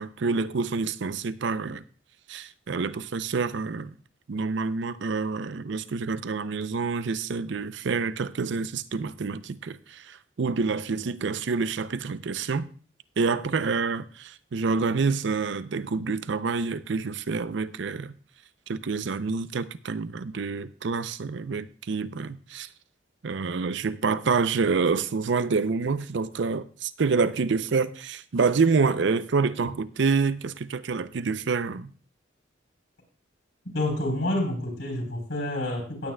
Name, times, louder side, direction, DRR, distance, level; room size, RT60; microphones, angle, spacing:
voice 1, 0.0-1.8 2.3-3.9 4.3-12.7 13.2-18.1 18.7-22.7 23.2-31.9, right 4 dB, 65° right, 0.5 m, -27 dB
voice 2, 33.7-36.1, left 1 dB, 70° left, 3.8 m, -28 dB
18.0 x 8.7 x 2.2 m
head